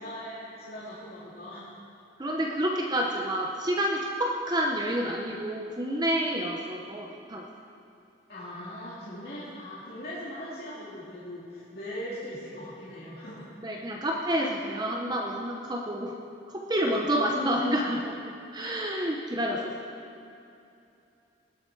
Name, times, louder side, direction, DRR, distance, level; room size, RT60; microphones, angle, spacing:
voice 1, 0.0-1.7 8.3-13.8, equal, 55° left, -10 dB, 2.4 m, -40 dB
voice 2, 2.2-7.4 13.6-16.2 16.5-20.1, equal, 20° right, -1 dB, 0.8 m, -29 dB
19.5 x 7.9 x 4.6 m, 2.7 s
head